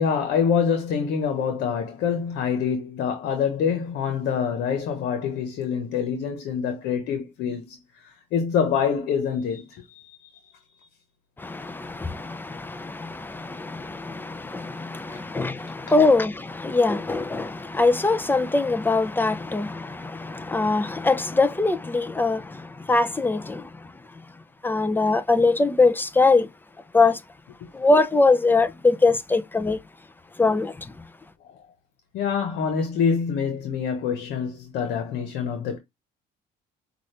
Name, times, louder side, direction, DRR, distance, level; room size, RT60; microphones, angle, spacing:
voice 1, 0.0-7.8 8.3-10.2 32.1-35.8, left 7 dB, 80° left, 1.2 m, -25 dB
voice 2, 11.4-23.9 24.6-26.5 26.9-27.2 27.7-29.8 30.4-30.9, left 3 dB, 10° left, 0.6 m, -22 dB
6.2 x 2.6 x 3.3 m
cardioid pair, 110°, 17 cm